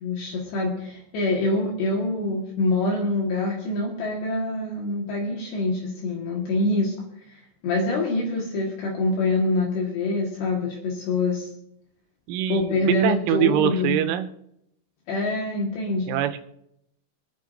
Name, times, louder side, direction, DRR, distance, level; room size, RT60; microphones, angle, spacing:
voice 1, 0.0-6.9 7.3-11.5 12.5-14.0 15.1-16.1, left 2 dB, 70° left, -2 dB, 3.5 m, -25 dB
voice 2, 12.3-14.3 16.1-16.4, right 11 dB, 90° right, 8 dB, 3.3 m, -24 dB
26.5 x 9.5 x 2.6 m, 0.79 s
omnidirectional pair, 5.5 m